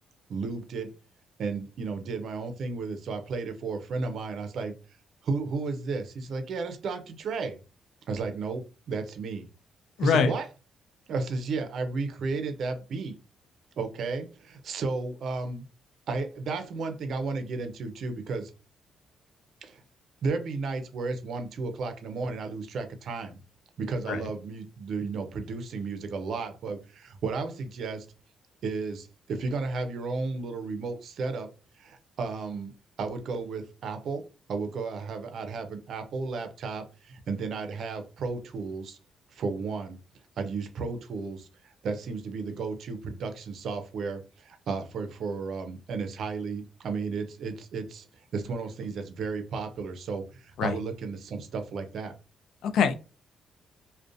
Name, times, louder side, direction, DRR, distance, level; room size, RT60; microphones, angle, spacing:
voice 1, 0.3-0.9 1.4-4.7 5.2-7.6 8.1-9.5 10.0-10.5 11.1-13.1 13.8-15.7 16.1-18.5 19.6-19.8 20.2-23.4 23.8-28.1 28.6-31.5 31.8-32.7 33.0-39.0 39.3-40.0 40.4-48.0 48.3-52.1, right 4 dB, 65° right, 7 dB, 0.5 m, -33 dB
voice 2, 10.0-10.3 24.1-24.2 50.6-50.7 52.6-52.9, left 6 dB, 75° left, 10 dB, 0.4 m, -23 dB
2.4 x 2.1 x 2.5 m, 0.31 s
cardioid pair, 90°, 0 cm